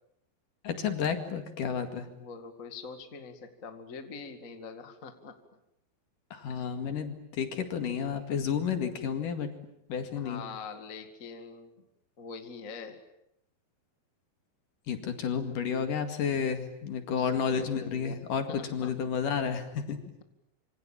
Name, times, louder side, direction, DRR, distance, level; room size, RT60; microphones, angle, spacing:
voice 1, 0.6-2.1 6.3-9.5 9.9-10.4 14.9-20.0, left 7 dB, 60° left, 7 dB, 3.5 m, -31 dB
voice 2, 2.2-5.4 6.5-6.7 10.1-11.8 12.2-13.0 17.1-18.2 18.5-18.9, left 5 dB, 25° left, 7 dB, 1.9 m, -43 dB
26.5 x 25.5 x 8.9 m, 0.79 s
omnidirectional pair, 4.4 m